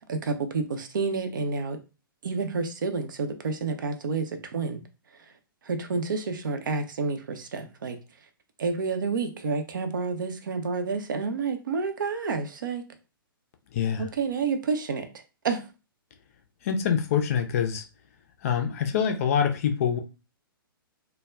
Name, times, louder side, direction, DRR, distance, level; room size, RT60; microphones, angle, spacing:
voice 1, 0.1-1.8 2.2-4.8 5.6-8.0 8.6-12.8 14.0-15.1 15.4-15.6, right 4 dB, 60° right, 7 dB, 0.5 m, -29 dB
voice 2, 13.7-14.1 16.6-17.8 18.4-20.0, left 7 dB, 40° left, 5 dB, 0.4 m, -25 dB
2.2 x 2.1 x 3.4 m, 0.30 s
figure-of-eight pair, 120°, 12 cm